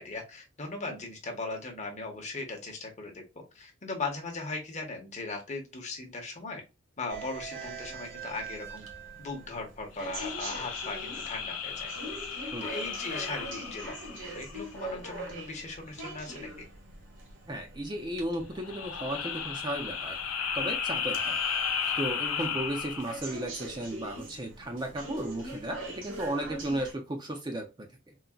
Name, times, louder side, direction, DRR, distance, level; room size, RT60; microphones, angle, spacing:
voice 1, 0.0-3.2 3.5-6.6 7.0-8.8 9.2-11.9 12.6-16.6 22.4-22.6, left 3 dB, 35° left, 1 dB, 0.8 m, -38 dB
sound 1, 7.1-26.9, right 2 dB, 60° right, 1.1 m, -43 dB
sound 2, 10.0-14.7 18.5-23.3, left 7 dB, 90° left, 0.6 m, -34 dB
voice 2, 17.5-20.2 20.5-21.4 22.0-27.9, right 1 dB, 20° right, 3 dB, 0.5 m, -35 dB
3.8 x 2.1 x 2.2 m, 0.27 s
head